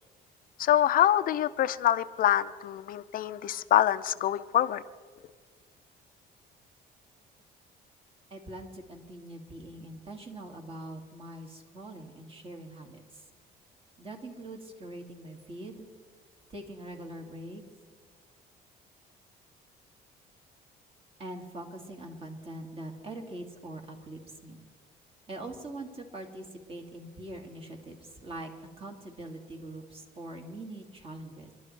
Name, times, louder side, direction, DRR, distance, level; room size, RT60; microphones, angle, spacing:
voice 1, 0.6-4.8, left 12 dB, 55° left, 12 dB, 0.5 m, -25 dB
voice 2, 8.3-13.2 14.0-15.9 16.5-17.6 21.2-24.6 25.3-28.5 28.8-31.5, right 1 dB, 35° right, 2 dB, 2.2 m, -43 dB
29.0 x 11.5 x 3.3 m, 1.5 s
cardioid pair, 110°, 17 cm